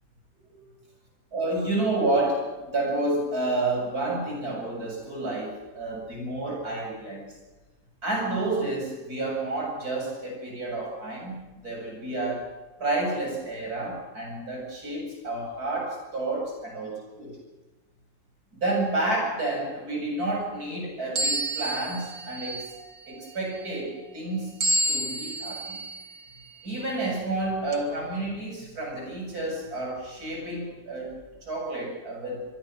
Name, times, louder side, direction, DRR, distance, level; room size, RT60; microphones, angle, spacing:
voice 1, 1.3-7.4 8.0-11.3 11.6-12.5 12.8-17.4 18.5-22.7 23.1-24.5 24.9-25.8 26.6-32.4, right 2 dB, 60° right, 0 dB, 8.3 m, -30 dB
sound 1, 21.2-22.9 24.6-26.1 26.7-26.8 27.7-27.8, right 1 dB, 90° right, 2.8 m, -29 dB
26.0 x 22.5 x 6.2 m, 1.2 s
omnidirectional pair, 1.8 m